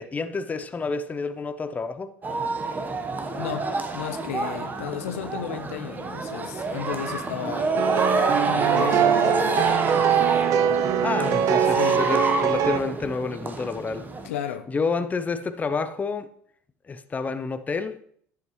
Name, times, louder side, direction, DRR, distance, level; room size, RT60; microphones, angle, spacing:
voice 1, 0.0-2.2 11.0-14.1 14.7-16.3 16.9-18.0, left 4 dB, 20° left, 0.6 m, -29 dB
sound 1, 2.2-14.3, right 3 dB, 25° right, 1.0 m, -28 dB
voice 2, 3.4-7.7 8.4-9.5 11.6-12.0 14.2-14.7, left 10 dB, 80° left, 0.7 m, -34 dB
sound 2, 7.8-12.8, right 8 dB, 55° right, 0.6 m, -22 dB
10.5 x 7.8 x 3.1 m
hypercardioid pair, 75°, 7 cm